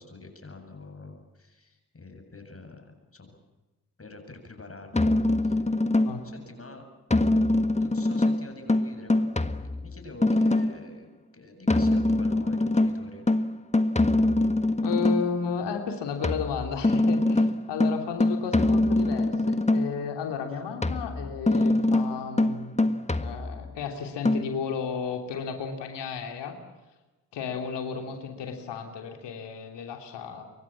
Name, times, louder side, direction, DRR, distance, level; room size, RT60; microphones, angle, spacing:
voice 1, 0.0-3.4 4.0-5.1 5.4-5.6 6.2-6.9 7.7-9.3 9.7-13.3, left 2 dB, 30° left, 5 dB, 7.8 m, -46 dB
sound 1, 4.9-6.4 7.1-10.9 11.7-15.4 16.2-20.1 20.8-23.8 24.2-24.4, left 2 dB, 15° left, 1.6 m, -24 dB
voice 2, 14.8-22.7 23.2-26.5 27.3-30.4, left 6 dB, 70° left, 4 dB, 3.3 m, -33 dB
26.0 x 23.5 x 7.4 m, 1.1 s
hypercardioid pair, 40°, 43 cm